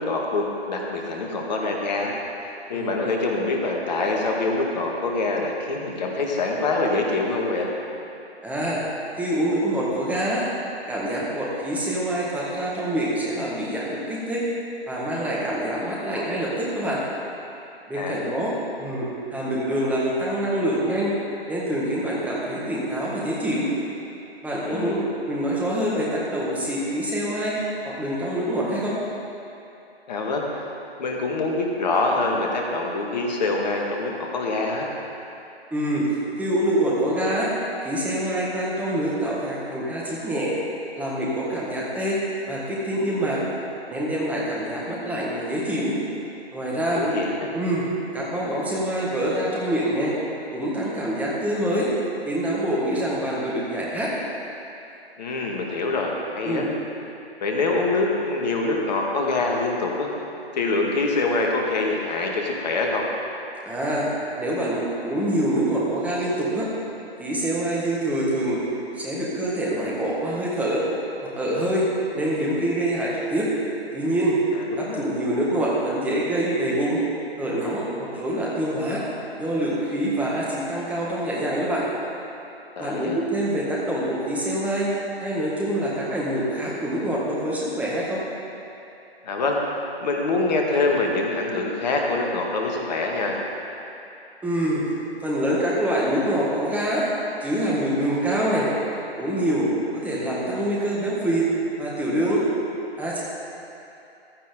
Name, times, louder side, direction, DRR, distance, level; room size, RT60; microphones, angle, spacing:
voice 1, 0.0-2.1 2.4-7.7 17.9-18.4 24.7-25.0 30.1-30.5 31.0-34.9 46.9-47.5 55.2-56.6 57.4-60.1 60.5-63.1 74.5-75.0 82.8-83.2 89.2-89.6 90.0-93.4, left 3 dB, 40° left, 0 dB, 1.9 m, -25 dB
voice 2, 8.4-8.8 9.1-10.4 10.9-14.5 14.9-17.0 17.9-18.5 18.8-21.1 21.5-23.7 24.4-27.5 27.8-28.9 35.7-36.1 36.4-37.5 37.8-40.5 40.9-42.2 42.5-43.4 43.9-46.0 46.5-47.0 47.5-47.9 48.1-50.2 50.5-51.9 52.3-54.1 56.4-56.7 63.6-64.1 64.4-66.7 67.2-68.6 69.0-70.8 71.3-71.9 72.1-73.5 73.9-74.4 74.8-77.0 77.4-79.0 79.4-81.9 82.8-84.9 85.2-88.2 94.4-94.8 95.2-97.1 97.4-98.7 99.2-99.7 100.0-101.5 101.8-102.4 103.0-103.2, right 1 dB, 5° right, -6 dB, 1.6 m, -25 dB
15.0 x 11.0 x 3.8 m, 2.8 s
figure-of-eight pair, 135°, 32 cm